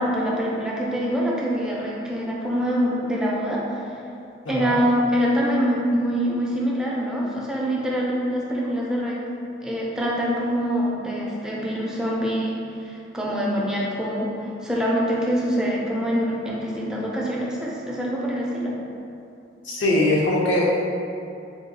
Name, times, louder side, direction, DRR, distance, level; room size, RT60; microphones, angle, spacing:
voice 1, 0.0-3.8 4.5-9.2 9.6-14.3 14.6-18.8, equal, 5° right, -5 dB, 0.4 m, -25 dB
voice 2, 19.6-20.8, left 1 dB, 80° left, -4 dB, 0.6 m, -21 dB
3.6 x 2.3 x 2.6 m, 2.6 s
head